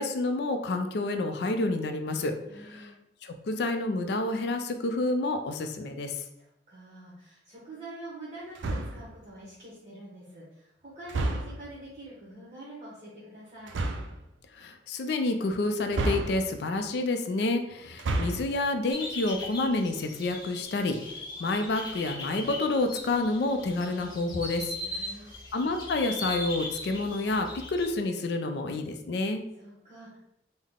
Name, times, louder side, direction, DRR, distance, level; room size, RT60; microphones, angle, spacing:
voice 1, 0.0-2.9 3.2-6.2 14.5-24.7 25.5-29.4, left 2 dB, 60° left, 6 dB, 0.4 m, -29 dB
voice 2, 2.5-3.0 6.4-13.8 24.8-25.3 29.6-30.2, right 1 dB, 35° right, -7 dB, 0.9 m, -46 dB
sound 1, 8.6-9.1 11.1-11.7 13.7-14.2 15.9-16.7 17.9-18.6, right 2 dB, 85° right, 0.4 m, -30 dB
sound 2, 18.9-27.9, left 2 dB, 25° left, 0.6 m, -39 dB
3.7 x 2.1 x 3.5 m, 0.83 s
head